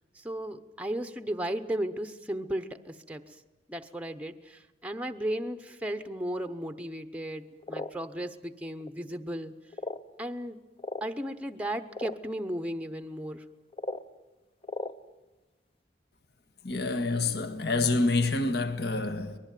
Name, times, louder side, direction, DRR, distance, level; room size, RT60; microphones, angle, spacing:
voice 1, 0.1-3.4 3.7-9.5 10.2-10.6 11.0-13.4, right 1 dB, 5° right, 0.8 m, -35 dB
sound 1, 7.6-7.9 8.8-8.9 9.7-10.1 10.8-11.0 11.9-12.1 13.7-14.0 14.6-14.9, left 2 dB, 30° left, 0.8 m, -36 dB
voice 2, 16.6-19.4, left 3 dB, 60° left, 1.6 m, -27 dB
24.5 x 20.5 x 9.2 m
head